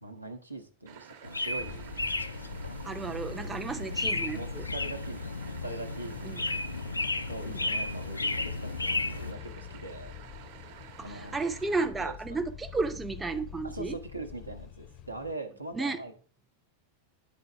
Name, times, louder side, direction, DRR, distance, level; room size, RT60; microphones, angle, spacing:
voice 1, 0.0-1.9 3.8-5.3 5.6-6.6 7.3-10.1 11.0-11.4 11.8-12.4 13.6-16.1, right 2 dB, 85° right, 0.8 m, -42 dB
sound 1, 0.9-11.9, right 7 dB, 50° right, 0.9 m, -51 dB
sound 2, 1.2-9.3, left 2 dB, 80° left, 0.3 m, -34 dB
sound 3, 1.6-15.4, left 9 dB, 35° left, 0.6 m, -46 dB
voice 2, 2.8-4.7 6.2-6.4 7.5-7.6 11.0-14.0 15.7-16.0, right 3 dB, 10° right, 0.5 m, -33 dB
9.6 x 3.9 x 3.3 m
figure-of-eight pair, 90°, 0 cm